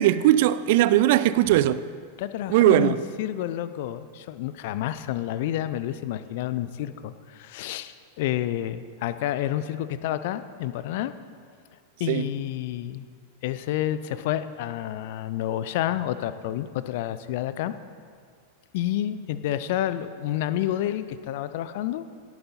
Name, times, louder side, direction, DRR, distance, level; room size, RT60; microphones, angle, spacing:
voice 1, 0.0-1.8 2.5-3.0 12.1-12.3, right 13 dB, 50° right, 0.4 m, -19 dB
voice 2, 2.2-11.1 12.0-13.1 13.4-17.7 18.7-22.0, left 12 dB, 50° left, 0.5 m, -29 dB
18.0 x 9.0 x 4.2 m
figure-of-eight pair, 90°, 0 cm